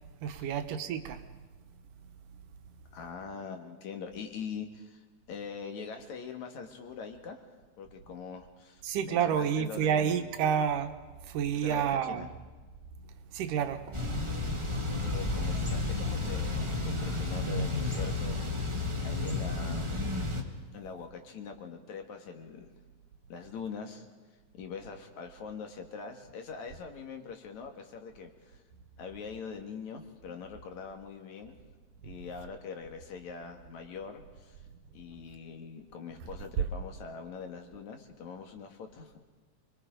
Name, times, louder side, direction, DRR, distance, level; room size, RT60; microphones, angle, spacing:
voice 1, 0.2-1.2 8.8-10.9 11.2-12.3 13.3-14.8, right 8 dB, 85° right, 2.7 m, -30 dB
voice 2, 2.9-5.0 5.3-7.4 7.8-10.3 11.6-12.3 14.5-14.7 15.0-18.4 19.0-20.0 20.7-22.7 23.3-24.1 24.5-28.6 29.0-31.6 32.0-34.6 34.9-39.2, left 6 dB, 65° left, 2.9 m, -43 dB
Thunder / Bicycle, 13.9-20.4, left 2 dB, 25° right, 0.6 m, -32 dB
28.0 x 21.5 x 5.2 m
omnidirectional pair, 3.7 m